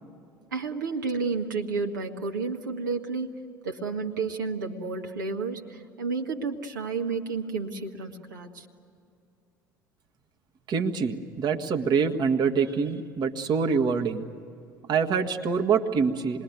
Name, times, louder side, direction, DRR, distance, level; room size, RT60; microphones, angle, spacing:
voice 1, 0.5-3.3 3.6-8.6, right 4 dB, 75° right, 2 dB, 1.5 m, -31 dB
voice 2, 10.7-14.3 14.9-16.4, right 5 dB, 45° right, 4 dB, 1.5 m, -25 dB
26.5 x 21.0 x 9.4 m, 2.6 s
figure-of-eight pair, 60°, 10 cm